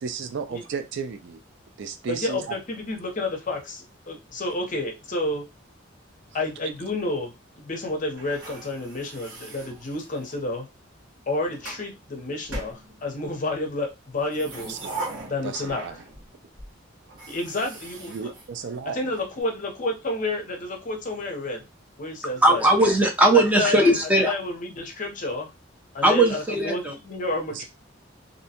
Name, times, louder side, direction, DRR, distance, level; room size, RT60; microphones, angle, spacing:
voice 1, 0.0-1.4 1.8-2.6 14.7-16.0 18.1-19.1 22.7-22.9 27.5-27.6, right 6 dB, 65° right, 0.4 m, -34 dB
voice 2, 2.1-5.4 6.3-10.7 11.3-14.7 15.3-15.8 17.3-18.3 18.9-21.6 22.0-22.6 23.6-23.9 24.2-25.5 25.9-27.6, left 2 dB, 40° left, 0.7 m, -30 dB
sound 1, 8.2-10.4 11.2-11.9 12.5-13.4 14.1-16.3 16.6-16.7 17.1-19.1, right 2 dB, 80° right, 1.2 m, -40 dB
voice 3, 22.4-24.3 26.0-26.9, right 1 dB, 10° right, 0.6 m, -19 dB
2.6 x 2.1 x 2.8 m
head